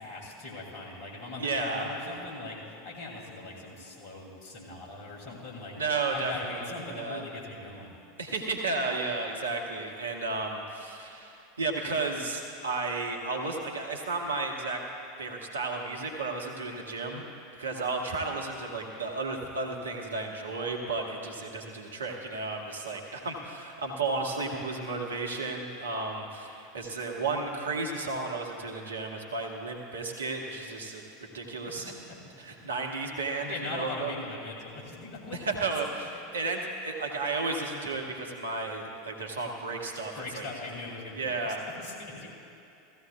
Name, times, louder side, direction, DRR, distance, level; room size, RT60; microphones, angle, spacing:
voice 1, 0.0-8.0 31.6-31.7 32.1-32.4 33.5-36.1 40.1-42.3, left 2 dB, 50° left, -2 dB, 2.6 m, -41 dB
voice 2, 1.4-1.9 5.8-7.2 8.2-14.8 15.2-17.2 17.6-31.0 31.3-31.9 32.4-34.1 35.3-40.5 41.2-41.6, right 3 dB, 75° right, 1 dB, 1.2 m, -33 dB
16.0 x 14.5 x 2.3 m, 2.7 s
figure-of-eight pair, 80°, 0 cm